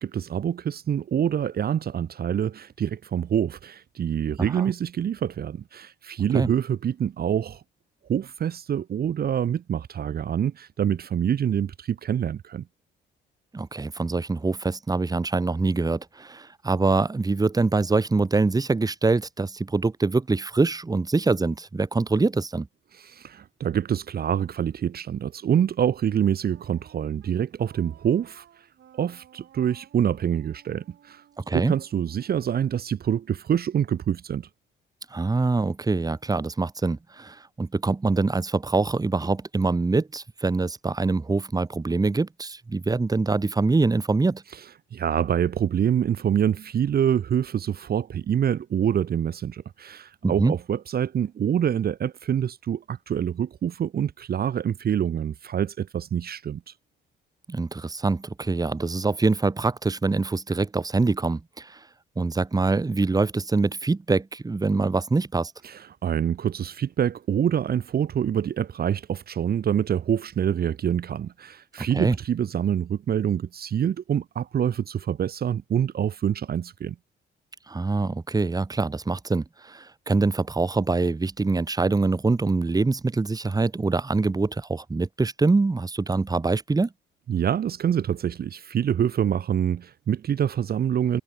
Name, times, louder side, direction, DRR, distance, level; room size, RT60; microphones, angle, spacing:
voice 1, 0.0-7.6 8.1-12.6 23.0-28.4 28.9-31.2 31.5-34.5 44.9-56.7 65.6-76.9 87.3-91.2, right 9 dB, 50° right, 1.0 m, -26 dB
voice 2, 4.4-4.7 6.3-6.5 13.5-22.7 31.5-31.8 35.1-44.4 50.2-50.5 57.5-61.8 62.2-65.5 71.8-72.2 77.7-86.9, right 3 dB, 20° right, 1.3 m, -24 dB
Wind instrument woodwind instrument, 26.5-33.4, right 10 dB, 70° right, 5.4 m, -56 dB
cardioid pair, 90°, 20 cm